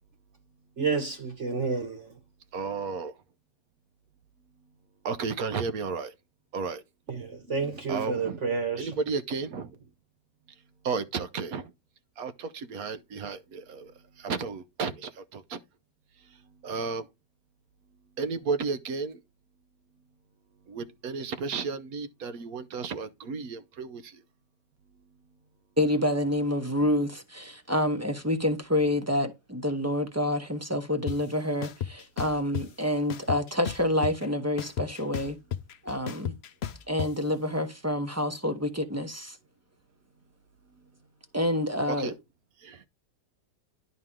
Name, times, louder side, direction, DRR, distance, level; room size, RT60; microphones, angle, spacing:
voice 1, 0.8-2.1 7.1-9.0, right 4 dB, 45° right, 1.3 m, -30 dB
voice 2, 2.5-3.1 5.0-6.1 6.5-6.8 7.9-8.4 8.8-9.7 10.8-11.7 12.2-13.9 14.2-15.6 16.6-17.1 18.2-19.2 20.7-24.2 41.9-42.1 42.6-42.8, right 5 dB, 65° right, 1.2 m, -33 dB
voice 3, 25.8-35.4 35.8-36.3 36.9-39.4 41.3-42.1, left 1 dB, 15° right, 0.6 m, -28 dB
sound 1, 31.1-31.2 31.6-32.6 33.1-34.3 34.6-37.1, left 9 dB, 70° left, 0.6 m, -33 dB
11.0 x 4.1 x 3.6 m
omnidirectional pair, 1.8 m